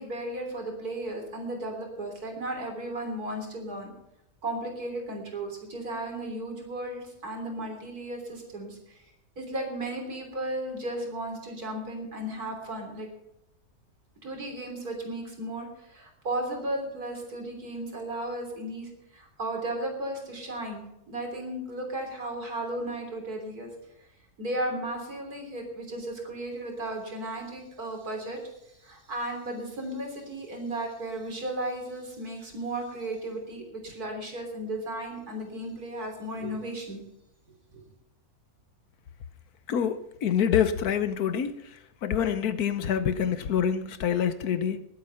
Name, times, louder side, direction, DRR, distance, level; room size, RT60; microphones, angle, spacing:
voice 1, 0.0-3.9 4.4-9.0 9.4-13.1 14.2-23.7 24.4-37.0 37.7-37.8, right 1 dB, 85° right, 3 dB, 3.9 m, -35 dB
voice 2, 39.7-41.5 42.0-44.8, left 8 dB, 85° left, 12 dB, 1.5 m, -26 dB
20.0 x 8.4 x 5.7 m, 0.82 s
omnidirectional pair, 1.6 m